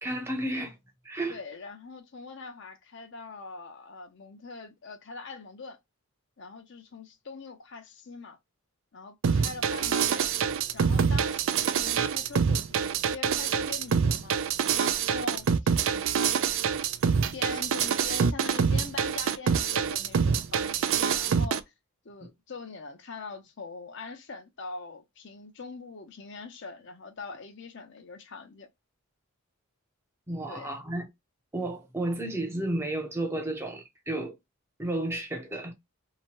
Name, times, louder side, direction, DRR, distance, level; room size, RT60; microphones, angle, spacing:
voice 1, 0.0-0.8 1.0-1.4 22.2-22.3 30.3-31.1 31.5-34.4 34.8-35.7, right 1 dB, 10° right, 0.6 m, -32 dB
voice 2, 1.3-5.8 6.4-8.4 8.9-10.3 10.7-14.5 14.7-16.5 17.3-21.7 22.0-28.7 30.5-30.7, left 4 dB, 55° left, 0.6 m, -43 dB
sound 1, 9.2-21.6, right 6 dB, 60° right, 0.3 m, -26 dB
2.9 x 2.2 x 2.8 m
head